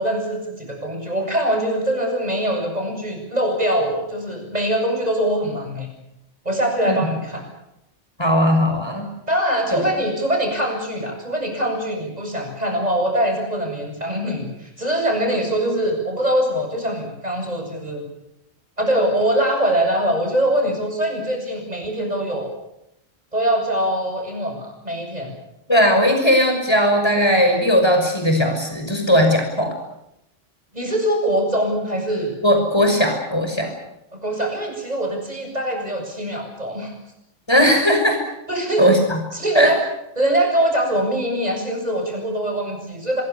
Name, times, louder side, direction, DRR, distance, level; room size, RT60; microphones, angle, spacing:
voice 1, 0.0-5.9 6.4-7.5 9.3-18.0 18.8-22.5 23.3-25.3 30.7-32.3 34.1-36.9 38.5-38.9 39.3-39.8 40.2-43.2, right 1 dB, 35° right, 3 dB, 7.8 m, -23 dB
voice 2, 8.2-9.1 9.7-9.9 25.7-29.7 32.4-33.7 37.5-38.2 38.8-39.2 39.5-39.7, equal, 20° left, 4 dB, 6.3 m, -18 dB
26.0 x 21.5 x 8.4 m, 0.83 s
omnidirectional pair, 1.2 m